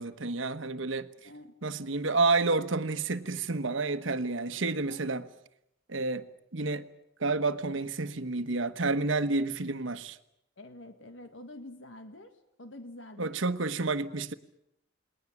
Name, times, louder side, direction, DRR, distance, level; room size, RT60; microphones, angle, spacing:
voice 1, 0.0-1.1 1.6-5.2 5.9-6.3 6.5-6.8 7.2-10.2 13.2-14.3, right 3 dB, 85° right, 1.2 m, -29 dB
voice 2, 1.2-1.6 4.8-5.2 10.6-13.3, left 1 dB, 80° left, 1.7 m, -47 dB
29.0 x 20.0 x 7.3 m
head